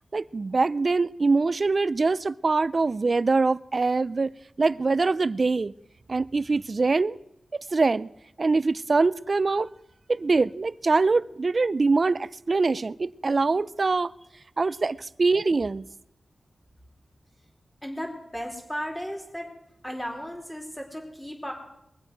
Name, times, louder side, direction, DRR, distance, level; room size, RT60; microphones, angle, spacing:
voice 1, 0.1-4.3 4.6-5.7 6.1-7.2 7.7-8.1 8.4-9.7 10.1-14.1 14.6-15.9, right 3 dB, 50° right, 0.4 m, -23 dB
voice 2, 17.8-19.5 19.8-21.5, equal, 10° left, 4.0 m, -35 dB
22.0 x 7.8 x 6.1 m
wide cardioid pair, 75°, 0 cm